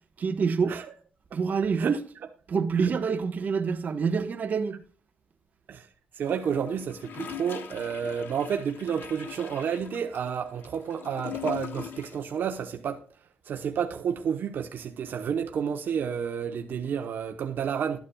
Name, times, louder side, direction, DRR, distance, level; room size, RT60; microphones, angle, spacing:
voice 1, 0.2-0.8 1.3-2.0 2.5-4.8, right 5 dB, 55° right, 1.1 m, -26 dB
Gurgling / Toilet flush, 6.2-12.3 12.6-12.7, left 8 dB, 85° left, 1.1 m, -41 dB
voice 2, 6.2-13.0 13.5-18.0, right 7 dB, 75° right, 0.9 m, -30 dB
12.5 x 9.5 x 2.3 m
cardioid pair, 110°, 3 cm